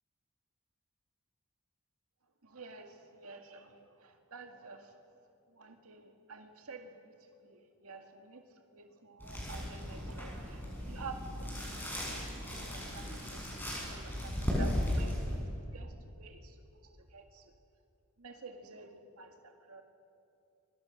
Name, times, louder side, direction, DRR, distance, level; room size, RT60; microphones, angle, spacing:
voice 1, 2.4-5.0 5.5-7.1 7.4-8.5 8.7-15.4 15.7-17.5 18.2-19.8, right 4 dB, 85° right, 4 dB, 1.9 m, -51 dB
sound 1, 9.2-15.4, left 1 dB, 10° left, 7.2 m, -36 dB
29.5 x 24.5 x 6.5 m, 2.7 s
head